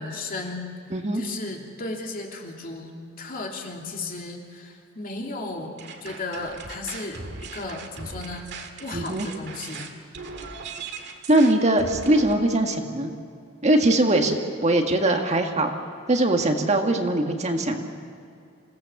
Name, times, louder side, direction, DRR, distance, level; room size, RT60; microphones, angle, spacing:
voice 1, 0.0-0.7 1.1-2.9 3.2-8.5 8.8-9.9, left 2 dB, 45° left, 0 dB, 2.9 m, -35 dB
voice 2, 0.9-1.2 8.9-9.3 11.3-13.1 13.6-14.4 14.6-15.7 16.1-17.9, right 1 dB, 35° right, 4 dB, 1.7 m, -21 dB
sound 1, 5.8-12.3, right 4 dB, 60° right, 1.9 m, -38 dB
27.0 x 17.0 x 7.1 m, 2.4 s
head